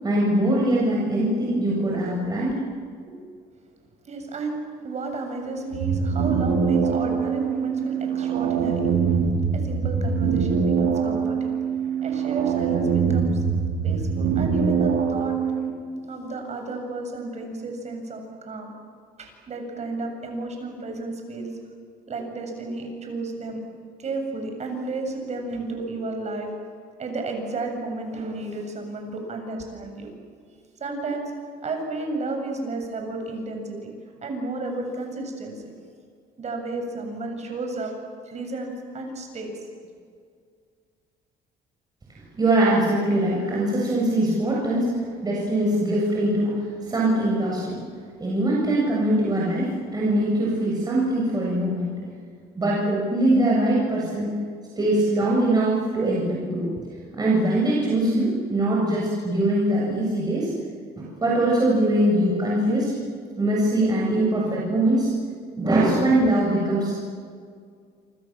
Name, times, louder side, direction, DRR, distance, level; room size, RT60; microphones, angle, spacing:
voice 1, 0.0-2.5 42.3-47.8 48.2-51.9 52.5-54.3 54.8-56.7 57.1-60.5 61.0-62.9 63.4-65.1 65.5-67.1, right 1 dB, 25° right, -4 dB, 7.6 m, -22 dB
voice 2, 4.0-4.6 4.8-8.9 9.5-11.5 12.0-13.4 13.8-15.4 16.1-18.7 19.2-21.6 22.1-23.6 24.0-26.5 27.0-30.1 30.8-31.3 31.6-33.9 34.2-35.7 36.4-37.9 38.2-39.6, right 2 dB, 40° right, 3 dB, 7.7 m, -32 dB
sound 1, 5.7-15.7, right 6 dB, 90° right, 5.0 m, -23 dB
28.5 x 26.0 x 7.6 m, 2.1 s
cardioid pair, 110°, 17 cm